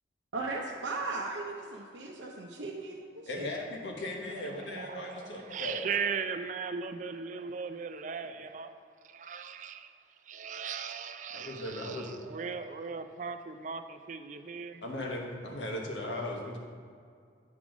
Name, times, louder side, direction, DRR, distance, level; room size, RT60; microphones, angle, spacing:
voice 1, 0.3-3.5, right 3 dB, 80° right, -2 dB, 0.6 m, -37 dB
voice 2, 3.2-5.8 11.3-12.1 14.8-16.6, left 1 dB, 85° left, 0 dB, 1.2 m, -37 dB
voice 3, 4.5-8.8 9.0-9.9 10.2-14.8, right 6 dB, 40° right, 9 dB, 0.4 m, -38 dB
8.4 x 3.8 x 6.0 m, 2.2 s
head